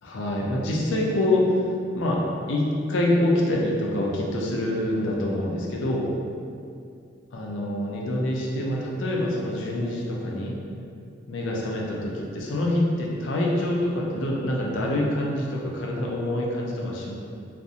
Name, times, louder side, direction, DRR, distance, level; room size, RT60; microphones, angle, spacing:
voice 1, 0.0-1.6 1.9-2.2 2.5-6.1 7.3-10.5 11.3-17.1, left 1 dB, 85° left, -2 dB, 0.4 m, -26 dB
2.4 x 2.0 x 2.7 m, 2.4 s
head